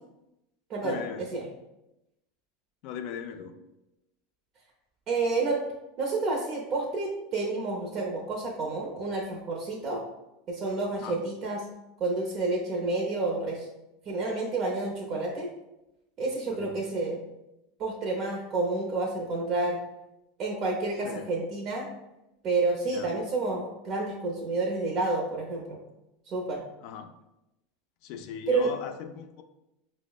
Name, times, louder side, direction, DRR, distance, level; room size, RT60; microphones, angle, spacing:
voice 1, 0.8-1.3 2.8-3.6 10.9-11.2 16.5-16.8 21.0-21.3 22.9-23.1 26.8-27.1 28.0-29.4, left 7 dB, 60° left, 6 dB, 0.4 m, -39 dB
voice 2, 5.1-5.6 6.0-10.0 10.5-11.6 12.0-13.7 14.1-15.5 16.2-17.3 17.8-19.8 20.4-21.9 22.4-25.8 26.3-26.6 28.5-28.7, right 3 dB, 45° right, -2 dB, 0.6 m, -29 dB
5.1 x 2.0 x 2.3 m, 0.92 s
hypercardioid pair, 105°, 0 cm